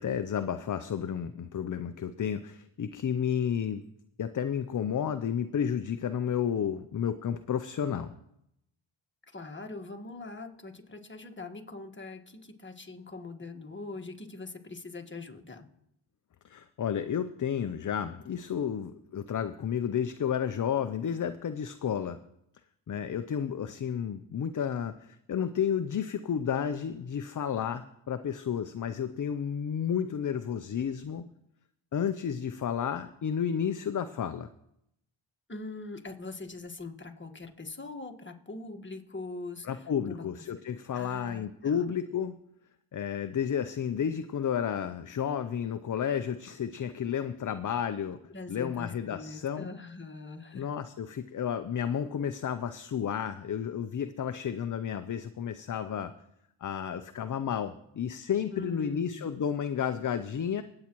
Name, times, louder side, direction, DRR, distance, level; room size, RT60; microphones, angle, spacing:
voice 1, 0.0-3.8 4.2-8.1 16.4-22.2 22.9-31.3 31.9-34.5 39.7-42.4 42.9-48.2 48.5-49.7 50.5-56.1 56.6-60.6, left 8 dB, 40° left, 10 dB, 0.6 m, -31 dB
voice 2, 9.3-15.7 35.5-40.3 40.9-41.9 48.3-50.7 58.5-59.3, left 3 dB, 25° left, 4 dB, 1.6 m, -42 dB
20.5 x 8.7 x 3.1 m, 0.79 s
cardioid pair, 60°, 49 cm